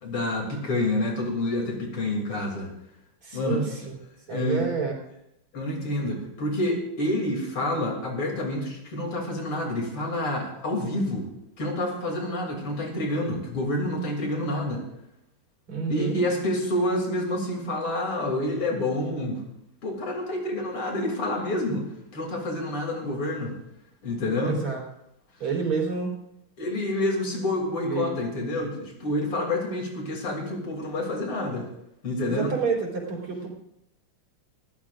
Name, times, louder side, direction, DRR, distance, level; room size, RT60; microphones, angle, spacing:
voice 1, 0.0-2.7 3.3-3.6 4.3-4.7 5.5-11.3 11.6-14.8 15.9-19.4 19.8-21.8 22.1-23.5 24.0-24.6 26.6-31.7 32.0-32.5, left 1 dB, 80° left, 1 dB, 3.9 m, -28 dB
voice 2, 3.2-3.9 4.3-4.9 15.7-16.2 24.4-24.8 25.4-26.1 27.8-28.2 32.3-33.5, right 5 dB, 80° right, -2 dB, 4.6 m, -29 dB
21.5 x 15.5 x 2.5 m, 0.83 s
omnidirectional pair, 2.4 m